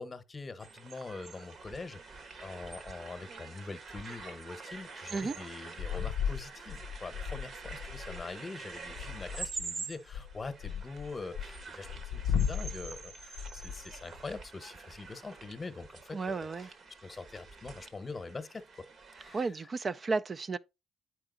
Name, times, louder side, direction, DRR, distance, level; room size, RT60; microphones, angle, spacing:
voice 1, 0.0-16.5 17.0-18.8 19.2-19.5, left 3 dB, 30° left, 0.9 m, -44 dB
sound 1, 0.6-19.4, right 4 dB, 55° right, 1.2 m, -46 dB
sound 2, 5.8-8.3 8.8-9.7 10.1-14.2, left 8 dB, 85° left, 0.4 m, -36 dB
voice 2, 16.1-16.7 19.3-20.6, right 4 dB, 35° right, 0.4 m, -33 dB
8.9 x 4.7 x 3.8 m
cardioid pair, 90°, 0 cm